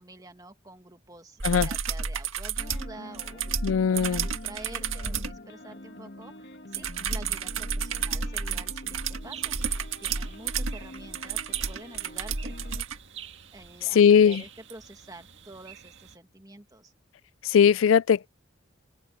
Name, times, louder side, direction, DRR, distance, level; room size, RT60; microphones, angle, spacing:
voice 1, 0.0-3.6 4.0-9.6 10.0-12.6 13.5-16.9, right 2 dB, 20° right, 2.0 m, -48 dB
sound 1, 1.4-5.4 6.7-13.0 14.7-14.8, right 6 dB, 85° right, 1.7 m, -31 dB
sound 2, 2.6-12.8, left 1 dB, 55° left, 2.2 m, -46 dB
voice 2, 3.6-4.3 13.9-14.4 17.4-18.3, left 7 dB, 80° left, 0.4 m, -19 dB
sound 3, 9.2-16.2, right 9 dB, 65° right, 1.9 m, -48 dB
open air
head